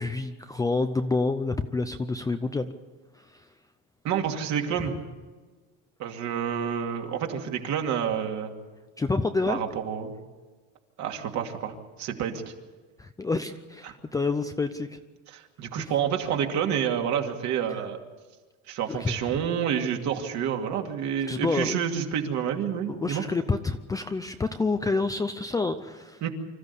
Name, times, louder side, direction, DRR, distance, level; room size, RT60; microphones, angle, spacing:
voice 1, 0.0-2.7 3.1-3.5 9.0-9.6 13.0-15.0 15.8-15.9 18.9-19.4 21.3-21.8 22.9-26.2, left 3 dB, 10° left, 7 dB, 0.5 m, -28 dB
voice 2, 4.0-5.0 6.0-8.5 9.5-10.1 11.0-12.4 13.8-13.9 15.3-18.0 18.7-23.2 26.2-26.3, right 8 dB, 50° right, 3 dB, 2.5 m, -29 dB
25.5 x 14.0 x 8.3 m, 1.3 s
cardioid pair, 155°, 36 cm